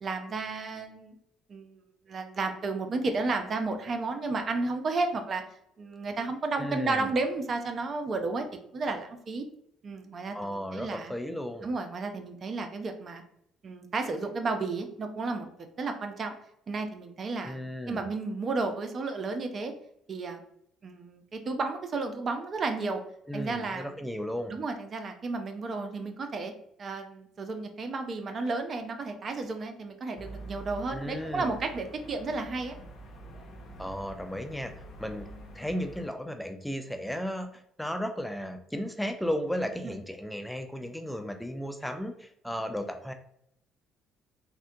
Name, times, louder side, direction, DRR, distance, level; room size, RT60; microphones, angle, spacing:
voice 1, 0.0-1.1 1.5-1.8 2.1-5.4 5.8-8.4 8.7-9.4 9.8-11.1 11.6-13.2 13.6-15.5 15.8-16.3 16.7-19.7 20.1-20.4 20.8-23.0 23.3-23.9 24.5-26.5 26.8-32.8 39.8-39.9, right 3 dB, 45° right, 6 dB, 0.5 m, -32 dB
voice 2, 6.6-7.1 10.3-11.7 17.4-18.0 23.3-24.5 30.9-31.6 33.8-34.7 35.0-35.3 35.5-43.1, equal, 5° left, 6 dB, 0.4 m, -34 dB
sound 1, 30.2-36.1, right 2 dB, 55° left, 0.7 m, -46 dB
3.5 x 2.1 x 2.7 m, 0.72 s
supercardioid pair, 65°, 0 cm